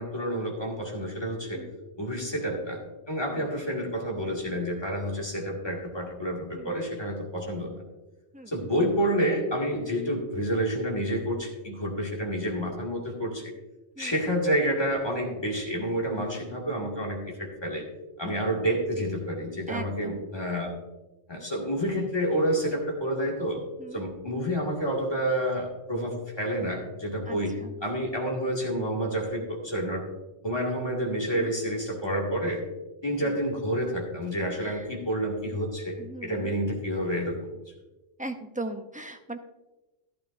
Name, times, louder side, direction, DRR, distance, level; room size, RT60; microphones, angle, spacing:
voice 1, 0.0-1.6 2.0-2.8 3.1-7.7 8.5-13.4 14.0-17.8 18.2-20.7 21.3-23.6 23.9-27.5 27.8-30.0 30.4-32.6 33.0-37.5, equal, 25° left, -1 dB, 2.1 m, -29 dB
voice 2, 6.5-6.9 8.3-8.5 14.0-14.2 18.2-18.6 19.7-20.3 23.8-24.1 27.3-27.7 31.3-31.6 34.6-35.0 36.0-36.5 38.2-39.4, right 2 dB, 10° right, 6 dB, 0.3 m, -40 dB
12.5 x 12.0 x 2.6 m, 1.1 s
omnidirectional pair, 1.1 m